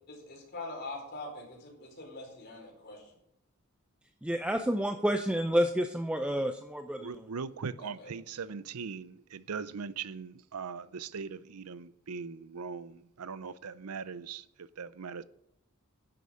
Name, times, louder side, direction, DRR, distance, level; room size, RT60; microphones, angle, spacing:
voice 1, 0.1-3.0 7.8-8.1, left 2 dB, 45° left, 4.4 m, -43 dB
voice 2, 4.2-7.1, equal, 5° right, 0.5 m, -29 dB
voice 3, 7.0-15.2, right 5 dB, 85° right, 0.6 m, -40 dB
11.0 x 7.9 x 6.4 m
head